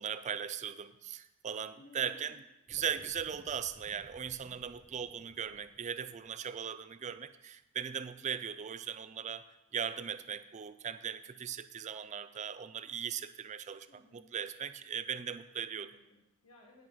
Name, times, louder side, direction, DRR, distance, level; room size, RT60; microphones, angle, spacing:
voice 1, 0.0-2.4 2.7-9.4 9.7-15.9, right 8 dB, 35° right, 12 dB, 0.4 m, -39 dB
voice 2, 1.8-2.3 13.9-14.3 15.7-16.9, left 2 dB, 80° left, -1 dB, 1.5 m, -59 dB
sound 1, 2.7-7.3, equal, ahead, 0.7 m, -60 dB
17.5 x 6.2 x 4.0 m, 0.91 s
head